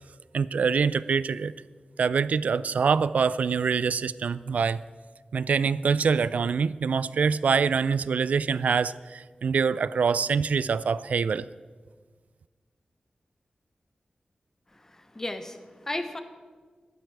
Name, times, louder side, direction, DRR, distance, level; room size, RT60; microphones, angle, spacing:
voice 1, 0.3-1.5 2.0-4.8 5.3-11.5, right 5 dB, 80° right, 17 dB, 0.3 m, -25 dB
voice 2, 14.7-16.2, left 1 dB, 20° left, 9 dB, 0.9 m, -35 dB
13.0 x 12.0 x 4.7 m, 1.5 s
wide cardioid pair, 130°, 2 cm